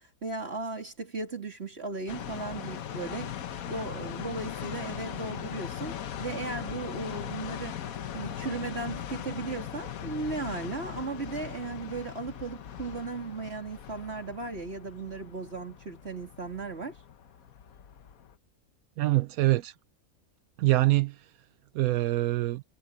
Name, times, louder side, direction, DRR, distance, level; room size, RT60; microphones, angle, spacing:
voice 1, 0.0-3.3 3.7-5.9 6.2-7.8 8.1-16.9, right 3 dB, 45° right, 3.5 m, -36 dB
sound 1, 2.1-18.3, left 10 dB, 85° left, 1.4 m, -39 dB
voice 2, 19.0-19.7 20.6-21.2 21.7-22.6, right 18 dB, 85° right, 1.1 m, -24 dB
omnidirectional pair, 1.5 m